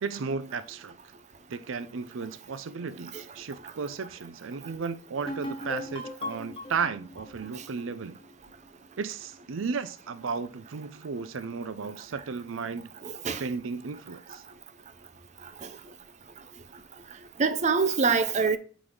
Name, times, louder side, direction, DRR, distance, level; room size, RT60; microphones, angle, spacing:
voice 1, 0.0-0.9 1.5-8.2 9.0-12.9 13.2-14.4, right 5 dB, 80° right, 0.5 m, -34 dB
sound 1, 5.3-8.8, left 1 dB, 30° left, 1.1 m, -39 dB
voice 2, 13.0-13.4 15.6-15.7 17.4-18.6, right 5 dB, 35° right, 0.6 m, -24 dB
7.8 x 4.0 x 3.7 m
head